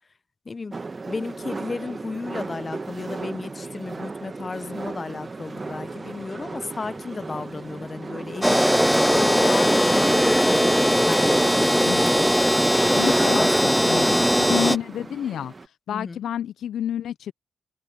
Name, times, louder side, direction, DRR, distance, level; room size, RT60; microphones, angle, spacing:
voice 1, 0.5-0.8 1.0-11.7 13.3-13.5 14.0-14.2 15.9-16.2, left 4 dB, 40° left, 0.7 m, -33 dB
sound 1, 0.7-15.7, right 3 dB, 40° right, 1.3 m, -37 dB
sound 2, 5.4-15.5, left 2 dB, 25° left, 3.1 m, -46 dB
sound 3, 8.4-14.8, equal, ahead, 0.4 m, -19 dB
voice 2, 11.8-12.2 12.9-15.5 15.9-17.3, left 10 dB, 80° left, 0.4 m, -29 dB
supercardioid pair, 50°, 0 cm